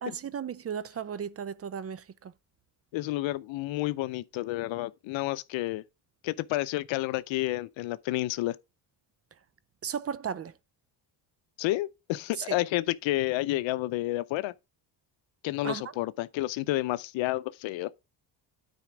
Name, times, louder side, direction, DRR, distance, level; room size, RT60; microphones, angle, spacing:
voice 1, 0.0-2.3 9.8-10.5 12.4-12.6 15.6-15.8, right 7 dB, 35° right, 0.5 m, -35 dB
voice 2, 2.9-5.8 6.2-8.6 11.6-14.5 15.4-17.9, left 17 dB, 80° left, 0.7 m, -30 dB
9.3 x 4.3 x 4.9 m
cardioid pair, 95°, 45 cm